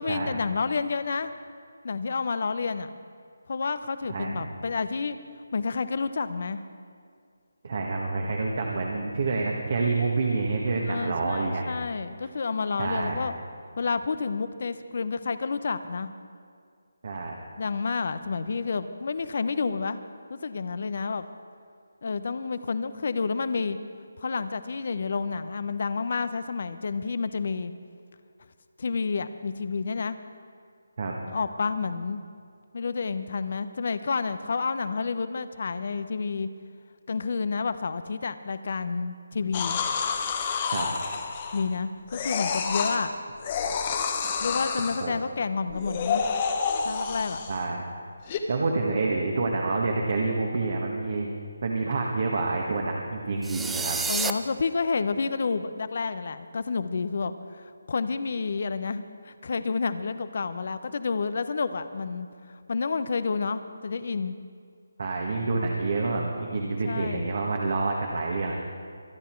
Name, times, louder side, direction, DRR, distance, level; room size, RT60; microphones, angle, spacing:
voice 1, 0.0-1.3 1.8-2.9 3.5-5.2 5.5-6.6 10.9-13.3 13.8-16.1 17.6-20.0 20.3-21.3 22.0-23.8 24.2-27.7 28.8-30.2 31.2-32.2 32.7-36.5 37.1-39.8 41.5-43.2 44.4-46.2 46.8-47.4 54.1-62.3 62.7-64.3 66.8-67.3, left 4 dB, 50° left, 12 dB, 0.8 m, -29 dB
voice 2, 4.1-4.4 7.6-11.7 12.8-13.3 17.0-17.4 31.0-31.2 40.7-40.9 45.0-45.1 47.5-47.9 48.5-51.3 51.6-54.0 65.0-68.6, right 3 dB, 50° right, 0 dB, 1.7 m, -28 dB
sound 1, 39.5-41.7 42.1-43.0 43.4-45.1 45.7-47.6 48.3-48.4, left 6 dB, 30° left, 1.3 m, -29 dB
sound 2, 53.4-54.3, right 4 dB, 5° right, 0.4 m, -29 dB
24.0 x 10.0 x 4.6 m, 2.2 s
figure-of-eight pair, 155°, 0 cm